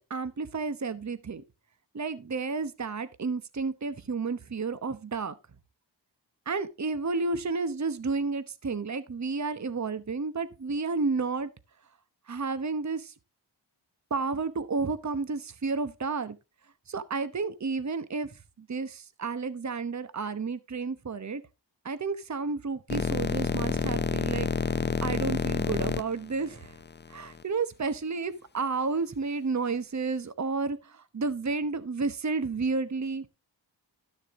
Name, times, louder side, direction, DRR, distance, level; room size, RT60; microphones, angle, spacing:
voice 1, 0.1-1.4 1.9-5.3 6.5-11.5 12.3-13.1 14.1-16.4 16.9-21.4 21.8-24.5 25.0-26.7 27.1-33.3, right 4 dB, 40° right, 1.0 m, -31 dB
sound 1, 22.9-27.4, left 5 dB, 25° left, 0.5 m, -29 dB
12.5 x 6.5 x 3.7 m
cardioid pair, 50°, 45 cm